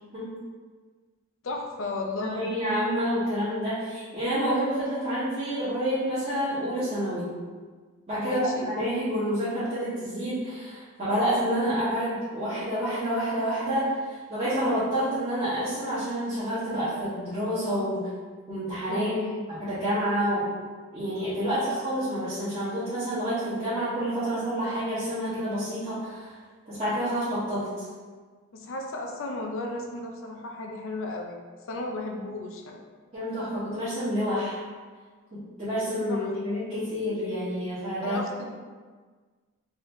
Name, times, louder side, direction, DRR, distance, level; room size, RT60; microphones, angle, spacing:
voice 1, 1.4-2.5 8.2-8.7 18.9-19.4 28.5-31.4 31.7-32.8 36.1-36.3 38.0-38.5, left 2 dB, 65° left, 1 dB, 0.5 m, -34 dB
voice 2, 2.1-7.3 8.1-14.0 14.3-18.0 18.5-19.1 19.6-20.4 20.9-26.3 26.7-27.9 33.1-34.6 35.3-38.2, equal, 30° right, -15 dB, 1.2 m, -28 dB
4.0 x 2.6 x 3.1 m, 1.5 s
head